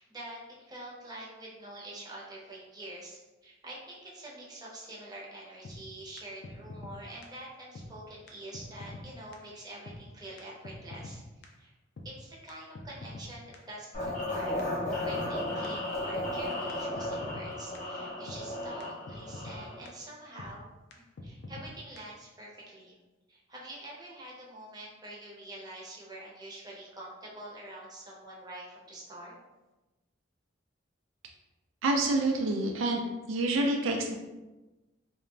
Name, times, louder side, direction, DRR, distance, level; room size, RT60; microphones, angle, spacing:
voice 1, 0.0-11.2 11.6-11.7 12.0-20.7 21.2-23.0 23.3-29.3, right 1 dB, 20° right, -5 dB, 0.6 m, -46 dB
sound 1, 5.6-5.8 6.2-6.3 6.4-6.9 7.2-7.3 7.7-7.9 8.3-8.4 8.5-9.1 9.3-9.4 9.9-10.0 10.4-10.5 10.6-11.2 11.4-11.5 12.0-12.1 12.5-13.3 13.5-13.6 14.1-14.2 14.6-14.7 14.9-15.4 15.6-15.7 16.2-16.3 16.7-16.8 17.0-17.5 17.7-17.8 18.3-18.4 18.8-18.9 19.1-19.6 19.9-20.0 20.4-20.5 20.9-21.0 21.2-21.7 22.0-22.1, left 2 dB, 60° left, 0.4 m, -44 dB
sound 2, 13.9-19.9, left 1 dB, 40° left, 0.8 m, -34 dB
voice 2, 31.8-33.0 33.3-34.2, right 2 dB, 80° right, 2 dB, 0.3 m, -27 dB
2.4 x 2.1 x 3.1 m, 1.1 s
head